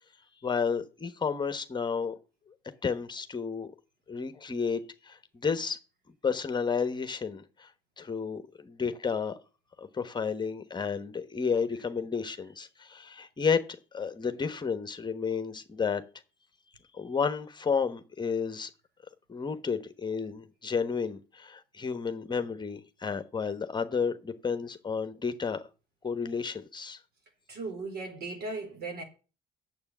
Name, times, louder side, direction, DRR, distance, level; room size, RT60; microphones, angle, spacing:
voice 1, 0.4-2.1 2.8-3.7 4.1-5.8 6.2-7.7 8.0-9.3 9.8-13.6 13.9-16.0 16.9-18.7 19.3-25.7 26.0-27.0, left 5 dB, 25° left, 1.2 m, -31 dB
voice 2, 27.5-29.0, right 3 dB, 70° right, 3.9 m, -37 dB
8.7 x 7.6 x 7.2 m
cardioid pair, 110°, 17 cm